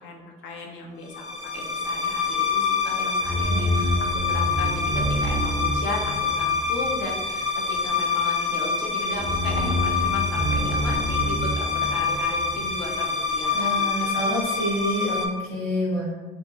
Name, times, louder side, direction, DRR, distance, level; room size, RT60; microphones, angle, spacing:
voice 1, 0.0-13.9, left 3 dB, 70° left, 0 dB, 0.6 m, -36 dB
sound 1, 1.1-15.3, left 3 dB, 35° left, 0.7 m, -25 dB
voice 2, 13.5-16.1, equal, 90° left, -9 dB, 1.4 m, -27 dB
2.6 x 2.6 x 2.4 m, 1.3 s
supercardioid pair, 70°, 20 cm